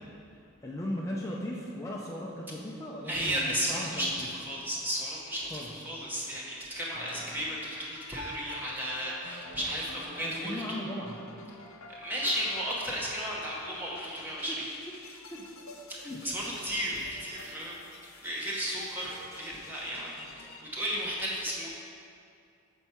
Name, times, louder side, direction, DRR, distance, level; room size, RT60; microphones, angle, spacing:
voice 1, 0.4-4.3 5.5-5.7 6.9-7.4 9.9-11.2 13.5-13.6 14.5-14.6 15.3-15.5 16.0-16.2, left 1 dB, 15° left, -3 dB, 0.4 m, -38 dB
voice 2, 3.0-10.6 11.9-14.7 15.9-17.8 18.2-20.2 20.6-21.7, equal, 10° right, -5 dB, 0.9 m, -34 dB
sound 1, 6.9-20.6, left 2 dB, 90° left, 0.6 m, -48 dB
7.1 x 4.5 x 4.3 m, 2.5 s
head